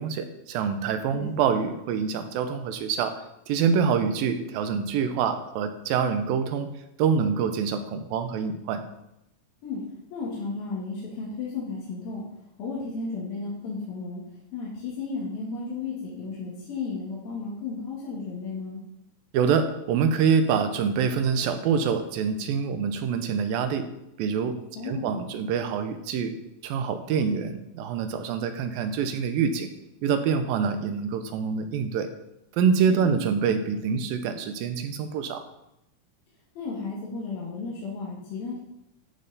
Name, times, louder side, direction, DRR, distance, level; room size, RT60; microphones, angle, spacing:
voice 1, 0.0-3.1 3.5-6.7 7.0-8.8 19.3-23.9 24.2-24.6 24.8-26.3 26.6-29.7 30.0-32.1 32.5-35.4, right 6 dB, 85° right, 8 dB, 2.6 m, -25 dB
voice 2, 10.1-14.2 14.5-18.8 24.8-25.1 33.0-33.2 36.6-38.6, left 4 dB, 85° left, -5 dB, 3.6 m, -34 dB
13.0 x 5.6 x 4.0 m, 0.85 s
omnidirectional pair, 4.0 m